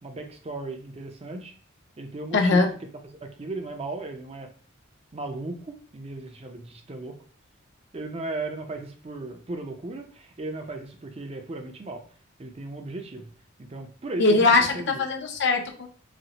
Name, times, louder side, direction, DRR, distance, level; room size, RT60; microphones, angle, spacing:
voice 1, 0.0-1.5 2.0-2.7 3.2-4.5 5.1-7.2 7.9-12.0 12.4-13.3 13.6-15.0, right 2 dB, 30° right, 5 dB, 0.5 m, -36 dB
voice 2, 2.3-2.7 14.2-15.9, left 3 dB, 55° left, 3 dB, 0.5 m, -21 dB
4.0 x 2.0 x 2.8 m, 0.42 s
head